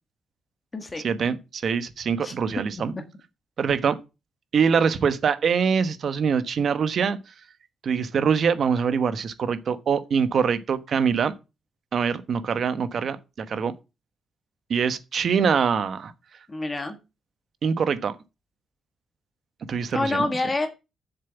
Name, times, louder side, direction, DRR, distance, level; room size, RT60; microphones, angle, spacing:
voice 1, 1.0-2.9 3.6-4.0 4.5-7.2 7.8-11.3 11.9-13.7 14.7-16.1 17.6-18.1 19.7-20.2, right 6 dB, 50° right, 1.2 m, -24 dB
voice 2, 16.5-17.0 19.9-20.7, left 2 dB, 20° left, 1.5 m, -27 dB
7.4 x 7.0 x 7.2 m
cardioid pair, 145°, 0 cm